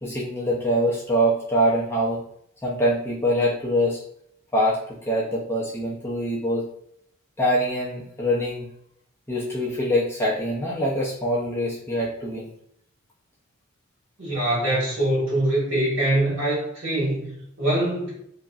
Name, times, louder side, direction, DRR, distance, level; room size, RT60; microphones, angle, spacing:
voice 1, 0.0-2.2 2.6-4.0 4.5-6.7 7.4-8.7 9.3-12.5, equal, 10° left, -5 dB, 0.5 m, -24 dB
voice 2, 14.2-18.1, right 1 dB, 65° right, -6 dB, 1.5 m, -24 dB
2.9 x 2.5 x 2.3 m, 0.69 s
head